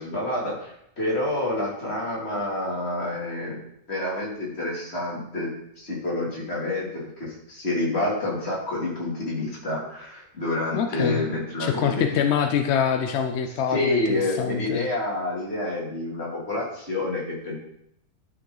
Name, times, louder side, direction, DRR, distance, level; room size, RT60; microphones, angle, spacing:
voice 1, 0.0-3.6 3.9-5.5 5.8-11.9 13.7-17.6, left 2 dB, 40° left, -4 dB, 2.8 m, -28 dB
voice 2, 10.7-11.2 11.6-14.9, left 7 dB, 60° left, 6 dB, 0.7 m, -25 dB
11.5 x 6.0 x 3.8 m, 0.77 s
omnidirectional pair, 1.6 m